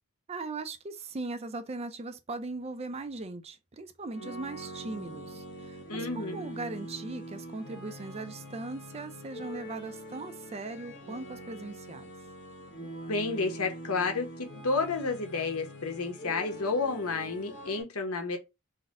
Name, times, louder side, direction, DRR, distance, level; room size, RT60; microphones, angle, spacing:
voice 1, 0.3-12.1, right 3 dB, 30° right, 0.4 m, -39 dB
sound 1, 4.1-17.8, equal, 55° left, 1.1 m, -44 dB
voice 2, 5.9-6.4 13.1-18.4, left 4 dB, 85° left, 1.0 m, -31 dB
4.1 x 2.1 x 3.6 m
head